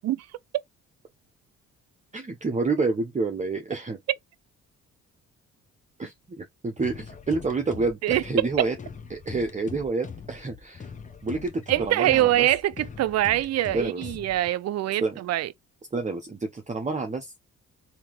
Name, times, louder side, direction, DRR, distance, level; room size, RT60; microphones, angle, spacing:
voice 1, 2.1-4.0 6.0-8.7 9.1-10.9 11.2-12.5 13.7-14.2 15.0-15.2 15.9-17.3, right 3 dB, 25° right, 0.9 m, -29 dB
sound 1, 6.8-14.5, left 6 dB, 25° left, 0.9 m, -42 dB
voice 2, 8.0-8.7 11.7-15.5, right 14 dB, 60° right, 0.5 m, -24 dB
3.6 x 2.9 x 3.0 m
cardioid pair, 90°, 30 cm